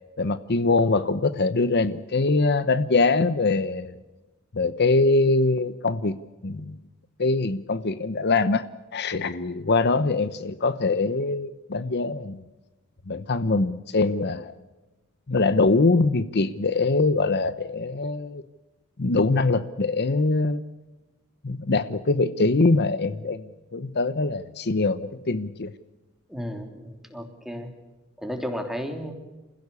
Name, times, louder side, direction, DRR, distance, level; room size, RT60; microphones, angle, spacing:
voice 1, 0.2-3.9 4.5-6.2 6.4-6.8 7.2-8.6 8.9-12.4 13.1-14.5 15.3-18.4 19.0-20.6 21.4-23.4 23.7-25.7, left 3 dB, 50° left, 13 dB, 0.9 m, -23 dB
voice 2, 26.3-27.7 28.2-29.1, equal, ahead, 5 dB, 3.1 m, -33 dB
28.5 x 16.0 x 8.4 m, 1.1 s
head